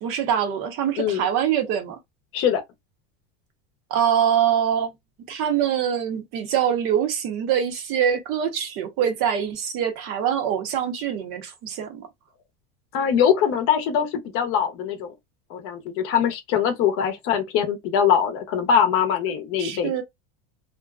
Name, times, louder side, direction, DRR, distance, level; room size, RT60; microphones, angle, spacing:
voice 1, 0.0-2.0 3.9-4.9 5.3-12.1 19.6-20.0, right 9 dB, 45° right, 0.7 m, -24 dB
voice 2, 1.0-1.3 2.3-2.6 12.9-15.1 15.5-20.0, left 8 dB, 45° left, 0.7 m, -22 dB
2.5 x 2.1 x 2.3 m
supercardioid pair, 145°, 31 cm